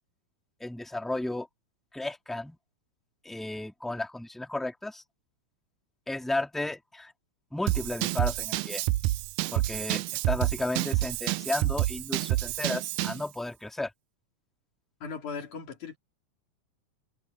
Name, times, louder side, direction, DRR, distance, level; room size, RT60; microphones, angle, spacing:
voice 1, 0.6-1.5 1.9-2.6 3.2-5.0 6.1-7.1 7.5-8.8 9.5-13.9, left 2 dB, ahead, 3.3 m, -33 dB
Drum kit / Drum, 7.7-13.2, right 17 dB, 85° right, 2.0 m, -29 dB
voice 2, 15.0-16.0, left 5 dB, 85° left, 4.8 m, -38 dB
omnidirectional pair, 3.4 m